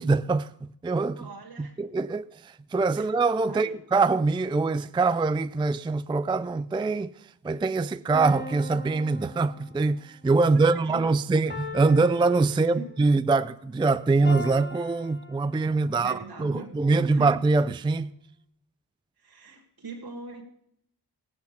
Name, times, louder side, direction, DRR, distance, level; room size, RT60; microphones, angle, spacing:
voice 1, 0.0-1.2 1.8-7.1 7.4-18.1, right 3 dB, 10° right, 0.4 m, -24 dB
voice 2, 1.2-1.8 3.0-3.1 3.5-3.8 10.4-11.2 12.5-13.0 15.9-17.3 19.2-20.4, right 3 dB, 60° right, 1.8 m, -42 dB
sound 1, 8.1-10.0 11.5-13.1 14.2-16.0, left 3 dB, 25° left, 2.3 m, -40 dB
15.5 x 8.2 x 6.6 m
cardioid pair, 50°, 43 cm